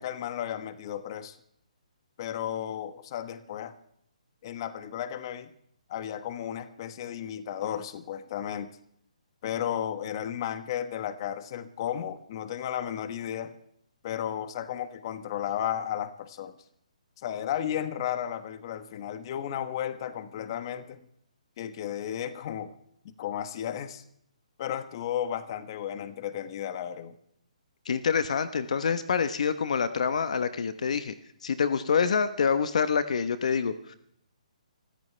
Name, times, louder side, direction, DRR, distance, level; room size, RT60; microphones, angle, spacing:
voice 1, 0.0-1.4 2.2-3.7 4.4-5.5 5.9-8.7 9.4-13.5 14.0-16.5 17.2-21.1 21.6-22.7 23.0-24.0 24.6-27.1, left 10 dB, 40° left, 11 dB, 1.3 m, -34 dB
voice 2, 27.8-31.1 31.4-34.0, left 6 dB, 65° left, 12 dB, 1.1 m, -26 dB
24.5 x 14.0 x 3.3 m, 0.70 s
hypercardioid pair, 150°, 4 cm